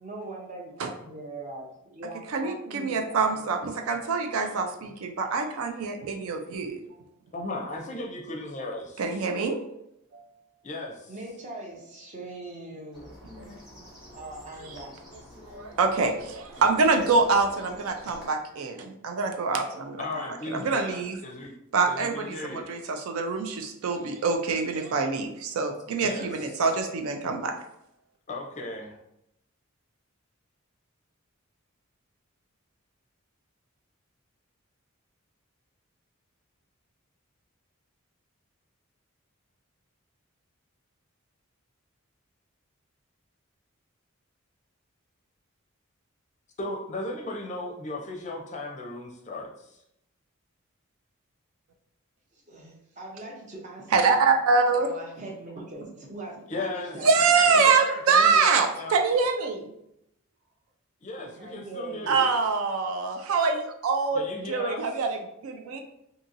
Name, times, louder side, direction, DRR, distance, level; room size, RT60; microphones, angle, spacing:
voice 1, 0.0-3.5 11.1-13.2 13.8-15.0 52.3-54.1 54.8-57.1 57.4-57.7 61.2-62.2, right 2 dB, 35° right, -1 dB, 0.6 m, -41 dB
voice 2, 2.3-6.8 9.0-9.6 10.1-10.2 13.4-13.5 15.5-20.0 20.5-21.2 21.7-27.5 53.9-54.9 57.0-59.7 62.1-64.2 64.5-65.8, right 4 dB, 80° right, 4 dB, 0.4 m, -25 dB
voice 3, 7.3-9.2 10.6-11.1 20.0-21.5 21.9-22.7 26.0-26.7 28.3-29.0 46.6-49.8 56.5-57.0 57.5-59.1 61.0-62.3 64.1-64.9, left 2 dB, 35° left, 0 dB, 0.4 m, -36 dB
sound 1, 12.9-18.3, left 1 dB, 5° right, 0.9 m, -46 dB
2.7 x 2.7 x 2.5 m, 0.80 s
head